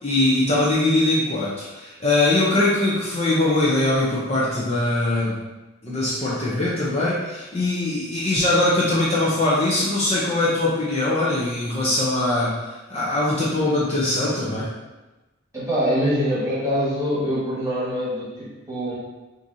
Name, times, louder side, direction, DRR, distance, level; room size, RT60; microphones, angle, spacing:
voice 1, 0.0-5.5 5.8-14.7, left 2 dB, 30° left, -7 dB, 0.6 m, -22 dB
voice 2, 15.5-18.9, equal, 15° right, -9 dB, 1.5 m, -24 dB
6.4 x 2.7 x 2.7 m, 1.1 s
head